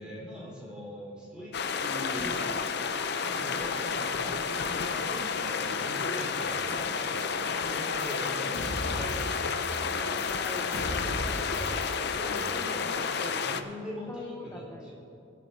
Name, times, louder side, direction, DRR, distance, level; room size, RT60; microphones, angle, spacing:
voice 1, 0.0-2.6 3.3-3.8 4.1-11.1 12.2-13.0 13.4-14.9, equal, 5° right, -6 dB, 3.3 m, -42 dB
sound 1, 1.5-13.6, left 5 dB, 50° left, 0.5 m, -31 dB
sound 2, 2.2-12.3, right 1 dB, 30° right, 1.7 m, -50 dB
sound 3, 8.0-8.3 8.5-9.4 9.6-9.9 10.2-12.1 12.4-12.6, left 1 dB, 65° left, 2.5 m, -37 dB
voice 2, 10.0-12.1 12.4-13.5 14.1-14.9, left 1 dB, 10° left, 0 dB, 0.7 m, -43 dB
20.5 x 7.6 x 4.1 m, 2.8 s
head